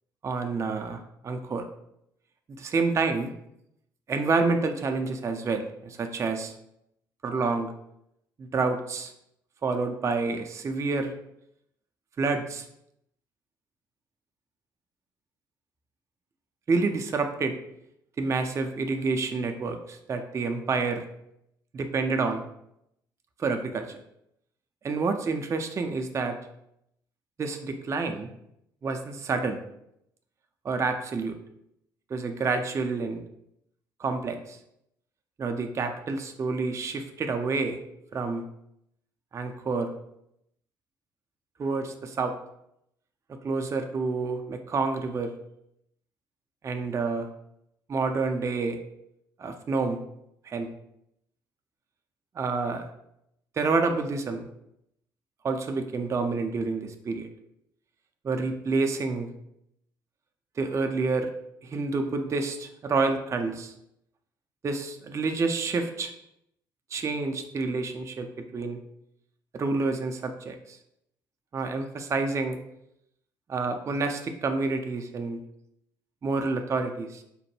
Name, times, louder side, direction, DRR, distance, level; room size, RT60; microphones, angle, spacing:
voice 1, 0.2-1.7 2.6-3.3 4.1-6.5 7.2-7.7 8.4-9.1 9.6-11.1 12.2-12.6 16.7-17.6 18.2-21.0 21.7-22.4 23.4-24.0 24.8-26.4 27.4-28.3 28.8-29.6 30.6-31.4 32.1-33.2 34.0-34.6 35.4-37.8 38.1-38.4 39.3-39.9 41.6-42.4 43.4-45.3 46.6-47.3 47.9-48.8 49.4-50.0 50.5-50.7 52.4-52.9 53.6-54.5 55.4-57.3 58.2-59.3 60.6-61.3 61.6-63.7 64.6-66.1 66.9-68.8 69.5-70.8 71.5-72.6 73.5-75.4 76.2-77.2, right 4 dB, 25° right, 6 dB, 0.3 m, -28 dB
2.9 x 2.1 x 3.0 m, 0.78 s
hypercardioid pair, 50°, 11 cm